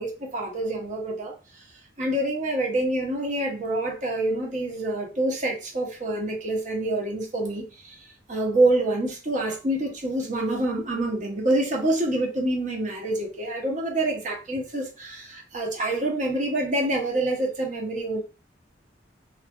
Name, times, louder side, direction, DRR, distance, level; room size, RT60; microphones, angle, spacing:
voice 1, 0.0-1.3 2.0-8.0 8.3-18.2, right 1 dB, 45° right, 0.8 m, -26 dB
3.1 x 2.6 x 2.2 m
head